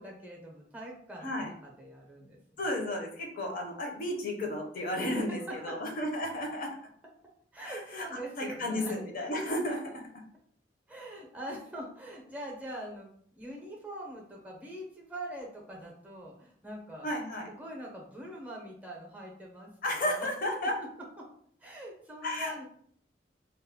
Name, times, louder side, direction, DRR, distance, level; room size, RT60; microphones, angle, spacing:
voice 1, 0.0-2.4 5.3-5.8 7.5-9.0 9.5-9.6 10.9-17.1 17.5-20.3 21.2-21.3 21.6-22.6, right 1 dB, 10° right, -1 dB, 0.6 m, -43 dB
voice 2, 1.2-1.5 2.6-6.7 7.6-8.1 8.4-10.0 17.0-17.5 19.8-20.7 22.2-22.5, left 1 dB, 50° left, 1 dB, 0.6 m, -33 dB
2.2 x 2.0 x 3.5 m, 0.63 s
head